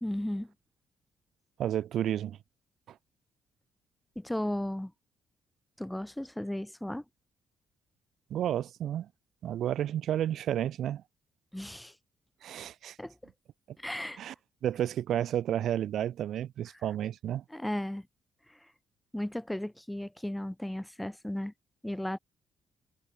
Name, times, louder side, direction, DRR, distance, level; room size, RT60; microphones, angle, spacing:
voice 1, 0.0-0.5 4.2-4.9 5.8-7.0 11.5-11.9 13.0-13.1 13.8-14.2 16.7-16.8 17.5-18.1 18.5-18.7 19.1-21.5 21.8-22.2, left 1 dB, 5° left, 0.4 m, -35 dB
voice 2, 1.6-2.4 8.3-9.1 9.4-11.0 12.4-13.0 14.2-14.3 14.6-17.4, right 11 dB, 70° right, 0.5 m, -31 dB
cardioid pair, 90°, 0 cm